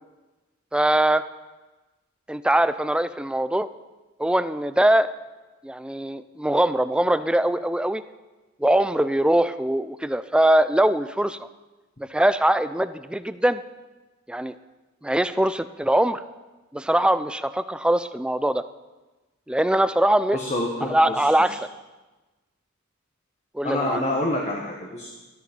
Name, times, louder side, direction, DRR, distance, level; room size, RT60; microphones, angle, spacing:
voice 1, 0.7-1.2 2.3-3.7 4.2-5.1 5.6-8.0 8.6-11.4 12.1-13.6 14.3-14.5 15.0-16.2 16.7-18.6 19.5-20.4 20.9-21.6 23.5-24.0, right 1 dB, 5° right, 13 dB, 0.4 m, -22 dB
voice 2, 20.3-21.3 23.6-25.1, left 1 dB, 35° left, -1 dB, 1.5 m, -27 dB
13.5 x 12.0 x 5.3 m, 1.2 s
head